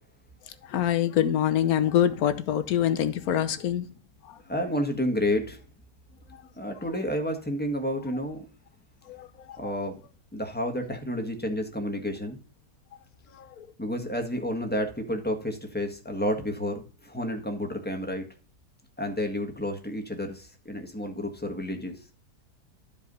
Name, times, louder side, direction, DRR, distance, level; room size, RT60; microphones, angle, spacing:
voice 1, 0.6-3.9 4.2-4.4 6.3-6.4 9.1-9.6 13.3-13.7, left 10 dB, 65° left, 10 dB, 1.3 m, -25 dB
voice 2, 4.5-5.6 6.6-8.4 9.6-10.0 10.3-12.4 13.8-18.3 19.0-22.0, left 1 dB, 5° left, 2 dB, 1.5 m, -30 dB
12.5 x 4.8 x 5.4 m, 0.36 s
omnidirectional pair, 1.8 m